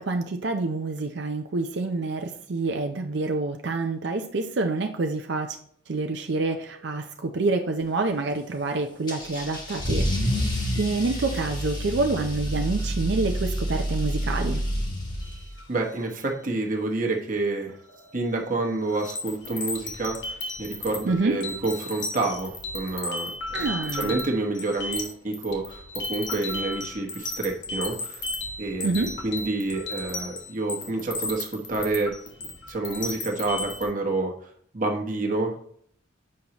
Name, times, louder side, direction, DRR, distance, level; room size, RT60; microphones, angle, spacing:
voice 1, 0.0-5.6 5.9-10.0 10.8-14.6 21.0-21.4 23.5-24.2 28.8-29.1, right 3 dB, 60° right, 5 dB, 0.5 m, -27 dB
Car / Engine starting / Accelerating revving vroom, 9.1-15.6, equal, 20° left, 1.2 m, -28 dB
sound 1, 15.2-15.8 17.9-18.2 18.4-33.9, left 2 dB, 60° left, 1.4 m, -34 dB
voice 2, 15.7-17.7 18.1-23.7 23.9-28.2 28.6-32.1 32.7-34.3 34.7-35.6, right 2 dB, 40° right, 1 dB, 1.1 m, -28 dB
7.6 x 5.5 x 2.9 m, 0.63 s
head